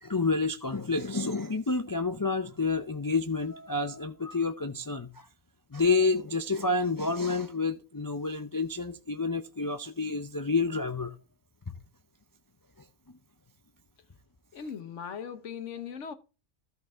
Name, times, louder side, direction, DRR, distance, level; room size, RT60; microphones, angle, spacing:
voice 1, 0.0-5.3 5.7-11.1 11.7-11.8, left 3 dB, 30° left, 0.3 m, -29 dB
voice 2, 14.5-16.1, left 7 dB, 70° left, 1.2 m, -39 dB
13.5 x 5.8 x 3.4 m
omnidirectional pair, 1.3 m